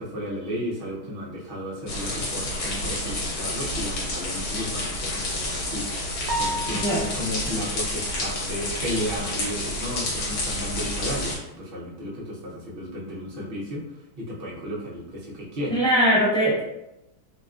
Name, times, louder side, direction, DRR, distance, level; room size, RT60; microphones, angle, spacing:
voice 1, 0.0-13.8 14.2-15.8, equal, 55° right, -5 dB, 0.6 m, -33 dB
sound 1, 1.9-11.4, left 1 dB, 70° left, 1.3 m, -29 dB
sound 2, 6.3-7.3, right 1 dB, 75° right, 1.1 m, -30 dB
voice 2, 15.7-16.6, equal, 5° left, -10 dB, 0.6 m, -20 dB
2.9 x 2.3 x 2.3 m, 0.89 s
omnidirectional pair, 1.8 m